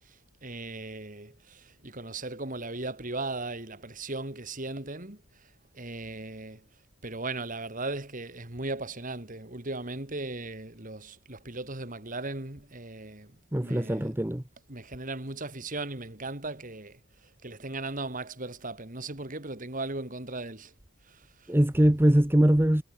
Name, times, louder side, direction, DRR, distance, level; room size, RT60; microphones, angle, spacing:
voice 1, 0.0-6.7 7.0-14.1 14.7-20.7 21.0-21.5, right 2 dB, 35° right, 2.7 m, -38 dB
voice 2, 13.5-14.4 21.5-22.8, right 1 dB, 10° right, 0.8 m, -22 dB
head